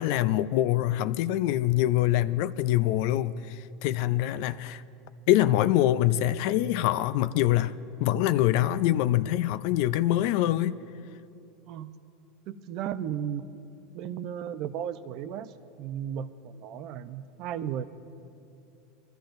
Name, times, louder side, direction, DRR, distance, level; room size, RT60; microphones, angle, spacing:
voice 1, 0.0-4.8 5.3-10.7, left 13 dB, 65° left, 0.4 m, -25 dB
voice 2, 12.5-13.5 13.9-17.8, right 9 dB, 55° right, 0.6 m, -35 dB
23.0 x 13.0 x 2.6 m
supercardioid pair, 120°, 0 cm